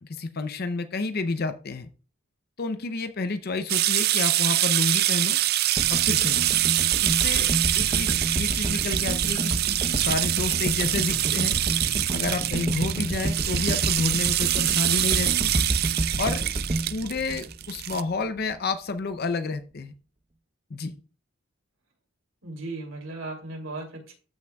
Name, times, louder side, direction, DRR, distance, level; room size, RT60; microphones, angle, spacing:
voice 1, 0.0-1.9 2.6-5.4 5.9-6.4 7.0-9.6 10.0-11.6 12.1-15.5 16.2-16.4 16.9-19.9 20.7-21.0, left 3 dB, 50° left, 9 dB, 0.6 m, -30 dB
sound 1, 3.7-18.0, right 14 dB, 50° right, 0.4 m, -25 dB
sound 2, 5.8-18.1 18.4-18.5, right 1 dB, 30° right, 0.8 m, -30 dB
voice 2, 22.4-24.1, right 2 dB, 75° right, 2 dB, 2.8 m, -36 dB
13.5 x 5.9 x 2.3 m, 0.37 s
head